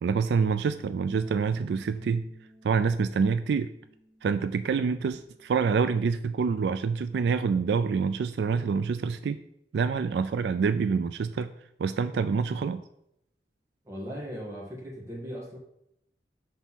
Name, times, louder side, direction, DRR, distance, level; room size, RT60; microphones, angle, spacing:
voice 1, 0.0-2.3 2.6-3.7 4.2-9.4 9.7-11.5 11.8-12.8, right 5 dB, 70° right, 11 dB, 0.3 m, -26 dB
Bass guitar, 0.8-7.1, equal, 35° right, 1.2 m, -56 dB
voice 2, 13.8-15.6, equal, 15° right, -3 dB, 1.5 m, -38 dB
6.2 x 3.5 x 5.7 m, 0.77 s
head